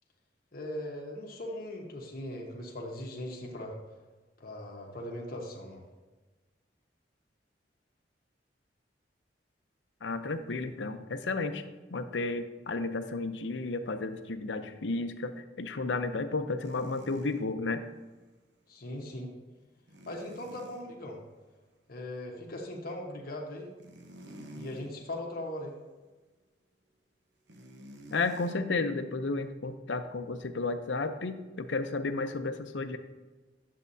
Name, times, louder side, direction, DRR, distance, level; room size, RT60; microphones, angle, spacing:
voice 1, 0.5-3.8 4.4-5.8 18.7-19.3 20.0-21.2 21.9-23.7 24.5-25.7, left 1 dB, 55° left, 0 dB, 1.3 m, -39 dB
voice 2, 10.0-11.6 11.9-17.8 28.1-33.0, left 3 dB, 85° left, 9 dB, 0.6 m, -32 dB
sound 1, 16.6-17.4 19.9-20.8 23.6-24.9 25.4-25.6 27.5-28.5, equal, 70° right, 0.9 m, -49 dB
10.0 x 7.4 x 2.7 m, 1.2 s
head